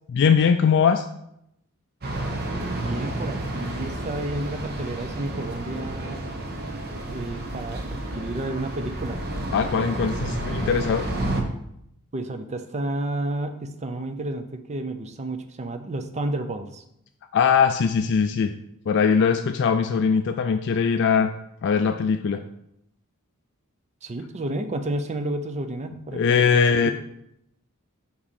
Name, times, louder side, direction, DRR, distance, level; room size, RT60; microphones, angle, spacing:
voice 1, 0.1-1.1 9.5-11.1 17.3-18.5 18.9-21.3 21.6-22.4 26.1-26.9, left 6 dB, 55° left, 8 dB, 0.3 m, -21 dB
sound 1, 2.0-11.4, right 1 dB, 45° right, 1.0 m, -31 dB
voice 2, 2.8-6.2 7.1-9.2 12.1-16.8 24.0-26.9, right 2 dB, 30° right, 8 dB, 0.5 m, -31 dB
5.8 x 4.7 x 4.2 m, 0.78 s
head